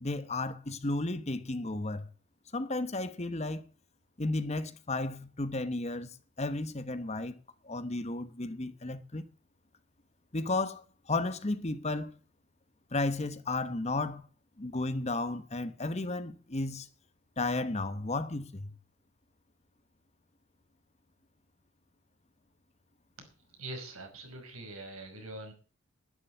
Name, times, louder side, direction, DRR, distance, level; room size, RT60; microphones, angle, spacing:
voice 1, 0.0-2.1 2.5-3.6 4.2-7.4 7.6-9.3 10.3-12.1 12.9-14.2 14.6-16.9 17.4-18.7, left 2 dB, 30° left, 1.1 m, -33 dB
voice 2, 23.6-25.5, right 2 dB, 85° right, 5.4 m, -43 dB
11.5 x 11.0 x 7.1 m
head